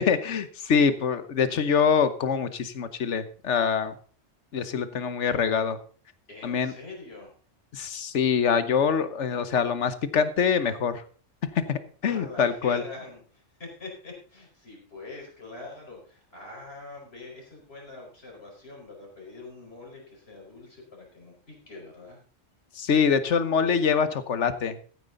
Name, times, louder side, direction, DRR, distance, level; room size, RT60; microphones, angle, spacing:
voice 1, 0.0-3.9 4.5-5.8 6.4-6.7 7.7-11.0 11.7-12.8 22.8-24.9, left 6 dB, 80° left, 12 dB, 1.3 m, -24 dB
voice 2, 6.3-7.3 12.0-22.2, left 2 dB, 60° left, -1 dB, 5.1 m, -44 dB
14.5 x 9.2 x 3.9 m, 0.42 s
omnidirectional pair, 1.2 m